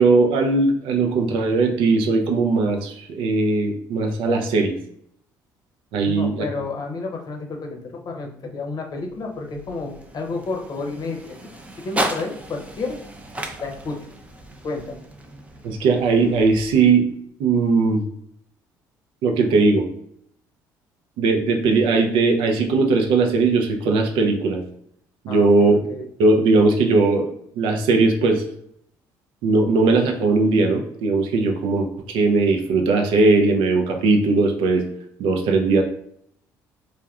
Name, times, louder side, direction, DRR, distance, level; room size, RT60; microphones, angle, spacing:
voice 1, 0.0-4.7 5.9-6.4 15.6-17.1 17.4-18.0 19.2-19.9 21.2-24.6 25.2-25.8 26.2-27.3 27.6-28.4 29.4-34.8 35.2-35.8, right 3 dB, 70° right, 3 dB, 0.5 m, -19 dB
voice 2, 6.1-11.4 11.8-13.0 13.6-14.0 14.6-15.0 25.3-26.1, left 3 dB, 45° left, 2 dB, 0.7 m, -30 dB
sound 1, 8.9-17.2, right 1 dB, 15° right, 0.4 m, -35 dB
3.4 x 2.1 x 2.3 m, 0.68 s
hypercardioid pair, 60°, 9 cm